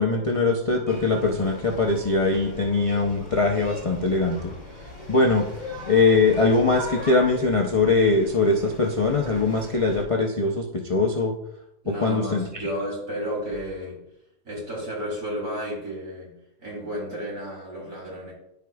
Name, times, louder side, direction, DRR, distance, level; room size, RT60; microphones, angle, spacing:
voice 1, 0.0-4.5 5.1-5.5 5.9-10.6 10.9-11.3 12.0-12.4, left 3 dB, 45° left, 1 dB, 0.4 m, -21 dB
sound 1, 0.9-10.0, left 1 dB, 15° right, 2.9 m, -40 dB
voice 2, 11.8-14.0 14.4-18.3, equal, 65° right, -4 dB, 3.7 m, -32 dB
13.5 x 4.7 x 2.3 m, 0.80 s
omnidirectional pair, 1.7 m